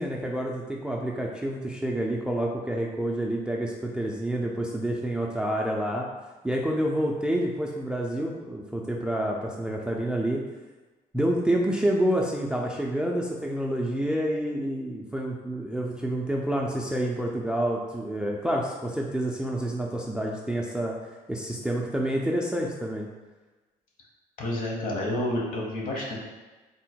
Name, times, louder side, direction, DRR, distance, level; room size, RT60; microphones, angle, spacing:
voice 1, 0.0-6.1 6.4-10.4 11.1-21.0 21.3-23.1, right 1 dB, 5° right, -1 dB, 0.3 m, -28 dB
voice 2, 24.4-26.2, left 1 dB, 50° left, -1 dB, 1.0 m, -29 dB
3.6 x 2.0 x 4.3 m, 1.2 s
cardioid pair, 110°, 17 cm